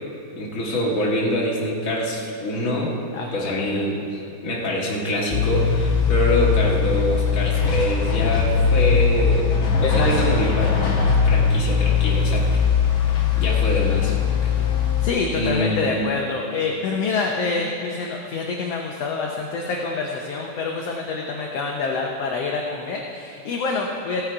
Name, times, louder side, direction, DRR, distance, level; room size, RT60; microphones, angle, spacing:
voice 1, 0.3-3.0 3.3-9.5 9.8-10.7 11.2-12.6 13.0-14.1 14.4-14.5 15.3-15.9, equal, 35° left, -4 dB, 1.7 m, -25 dB
voice 2, 3.1-3.8 9.8-10.2 15.0-24.2, left 4 dB, 70° left, 0 dB, 1.6 m, -26 dB
sound 1, 5.3-15.1, left 6 dB, 55° left, 1.7 m, -20 dB
15.5 x 8.7 x 4.6 m, 2.6 s
omnidirectional pair, 3.5 m